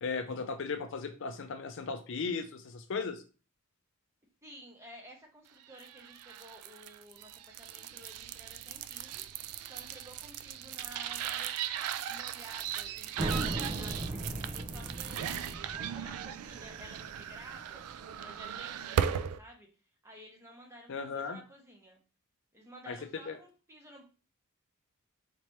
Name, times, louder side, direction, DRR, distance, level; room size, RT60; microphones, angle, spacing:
voice 1, 0.0-3.2 20.9-21.4 22.9-23.4, left 4 dB, 60° left, 7 dB, 0.5 m, -36 dB
voice 2, 4.4-9.2 9.6-11.6 12.1-15.4 15.7-17.9 18.2-19.7 20.0-22.0 22.5-24.0, equal, 15° right, -1 dB, 1.0 m, -53 dB
sound 1, 5.7-19.4, right 9 dB, 85° right, 0.3 m, -38 dB
sound 2, 13.2-18.5, right 1 dB, 30° right, 0.5 m, -38 dB
4.4 x 2.9 x 3.2 m, 0.34 s
head